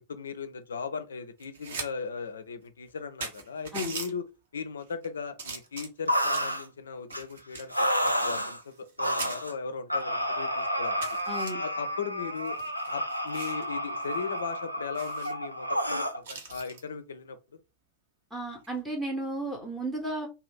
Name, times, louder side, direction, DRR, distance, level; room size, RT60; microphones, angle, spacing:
voice 1, 0.0-4.3 4.5-11.0 11.6-12.6 12.8-17.4, left 5 dB, 70° left, 0.4 m, -38 dB
sound 1, 1.4-1.9 2.3-2.4 2.9-3.0 3.2-4.1 4.8-5.1 5.4-6.6 7.1-8.9 9.2-9.4 10.0-10.1 10.4-10.5 11.0-11.5 12.4-13.6 14.0-14.2 14.5-14.6 14.9-15.3 16.2-16.8 18.5-18.8, right 4 dB, 65° right, 0.8 m, -40 dB
sound 2, 6.1-6.7 7.1-7.2 7.7-8.6 9.0-9.5 9.9-16.2, equal, 90° right, 0.3 m, -30 dB
voice 2, 11.3-11.6 18.3-20.3, right 1 dB, 5° right, 0.7 m, -33 dB
2.6 x 2.2 x 3.4 m
figure-of-eight pair, 90°, 0 cm